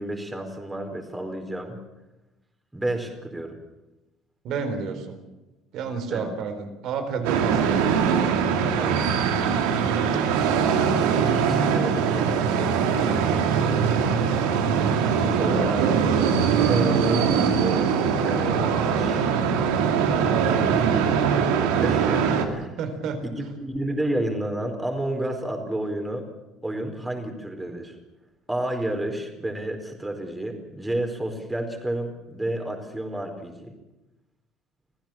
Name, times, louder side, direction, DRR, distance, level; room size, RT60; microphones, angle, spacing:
voice 1, 0.0-1.8 2.7-3.6 6.1-6.3 8.8-9.2 11.3-12.5 15.4-16.0 16.6-19.2 20.9-21.1 21.8-22.8 23.2-26.3 26.6-27.9 28.5-33.7, right 1 dB, 10° right, 4 dB, 4.6 m, -30 dB
voice 2, 4.4-5.2 5.7-7.8 8.4-8.7 10.1-10.4 15.5-15.9 18.5-18.7 20.1-20.8 22.8-23.2, right 5 dB, 65° right, 8 dB, 4.1 m, -31 dB
sound 1, 7.2-22.4, right 6 dB, 85° right, 2.5 m, -22 dB
26.0 x 15.5 x 7.5 m, 1.0 s
supercardioid pair, 80°, 0 cm